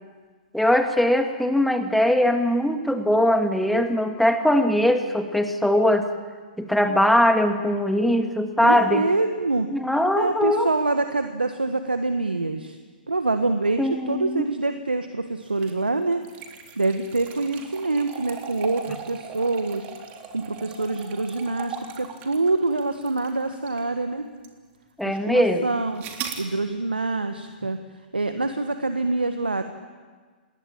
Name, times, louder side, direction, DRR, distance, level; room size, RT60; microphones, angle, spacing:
voice 1, 0.5-6.1 6.6-9.0 9.7-10.7 13.8-14.4 25.0-25.7, left 1 dB, ahead, 5 dB, 2.4 m, -21 dB
voice 2, 8.6-9.7 10.2-12.8 13.1-16.2 16.8-19.9 20.3-24.3 25.0-26.0 26.4-27.8 28.1-29.7, right 3 dB, 85° right, 8 dB, 1.5 m, -25 dB
sound 1, 15.5-23.9 24.4-24.5 26.0-26.5, right 6 dB, 30° right, 3.5 m, -39 dB
27.5 x 21.0 x 9.0 m, 1.5 s
figure-of-eight pair, 115°, 5 cm